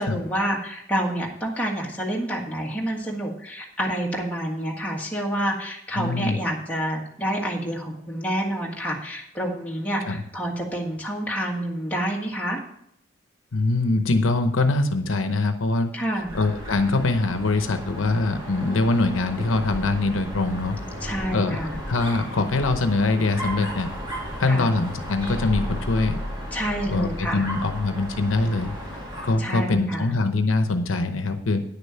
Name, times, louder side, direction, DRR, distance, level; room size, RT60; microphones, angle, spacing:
voice 1, 0.0-12.6 15.9-16.3 21.0-21.8 24.5-24.7 26.5-27.4 29.4-30.1, right 1 dB, 10° left, -2 dB, 1.6 m, -28 dB
voice 2, 6.0-6.4 10.0-10.2 13.5-15.9 16.3-20.8 21.3-21.6 21.9-23.9 24.4-26.2 26.9-28.7 29.2-31.6, left 2 dB, 85° left, 8 dB, 0.8 m, -23 dB
Dog, 16.2-29.5, equal, 20° right, 2.6 m, -34 dB
9.8 x 6.7 x 5.6 m, 0.72 s
head